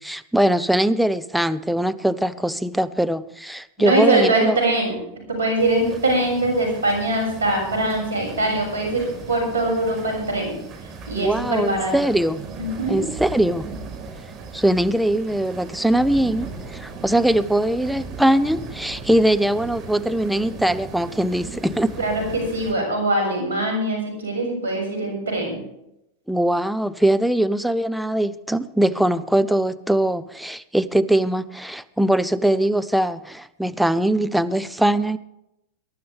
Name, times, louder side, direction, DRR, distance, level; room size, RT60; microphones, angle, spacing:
voice 1, 0.0-4.6 11.1-12.4 12.9-13.7 14.5-21.9 26.3-35.2, right 1 dB, ahead, 12 dB, 0.8 m, -21 dB
voice 2, 3.8-5.0 5.3-10.5 11.1-11.9 12.6-13.0 22.0-25.6, right 2 dB, 90° right, 2 dB, 6.9 m, -22 dB
sound 1, 5.6-22.7, right 4 dB, 40° right, 4.6 m, -37 dB
22.5 x 11.5 x 3.5 m, 0.83 s
hypercardioid pair, 100°, 0 cm